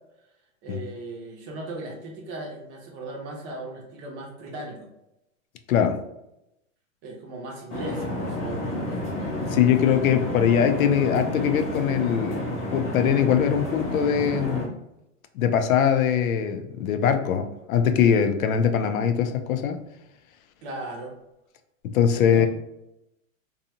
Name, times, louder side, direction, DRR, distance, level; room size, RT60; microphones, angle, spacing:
voice 1, 0.6-4.9 7.0-9.1 20.6-21.1 22.1-22.5, right 2 dB, 30° right, 0.6 m, -37 dB
voice 2, 5.7-6.0 9.5-14.7 15.4-19.8 21.8-22.5, left 8 dB, 85° left, 0.5 m, -22 dB
sound 1, 7.7-14.7, left 1 dB, 15° left, 0.4 m, -30 dB
2.7 x 2.3 x 2.7 m
hypercardioid pair, 135°, 40 cm